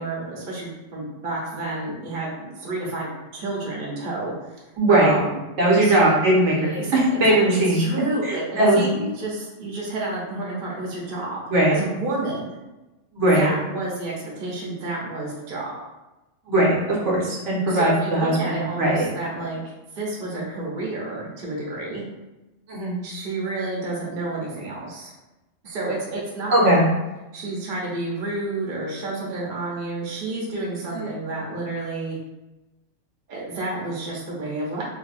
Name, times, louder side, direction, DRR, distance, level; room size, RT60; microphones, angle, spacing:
voice 1, 0.0-4.6 4.9-5.4 5.8-6.1 6.5-11.4 11.7-12.6 13.3-15.7 17.7-19.6 20.0-22.0 23.0-25.1 25.6-26.8 27.3-32.2 33.3-34.8, right 2 dB, 45° right, -4 dB, 0.9 m, -30 dB
voice 2, 4.8-5.2 5.6-7.8 8.2-8.8 11.5-11.8 13.1-13.5 16.5-19.1 20.3-20.4 22.7-23.0 26.5-26.8 30.9-31.1, right 1 dB, 70° right, -4 dB, 1.2 m, -19 dB
2.7 x 2.6 x 4.1 m, 1.0 s
omnidirectional pair, 1.3 m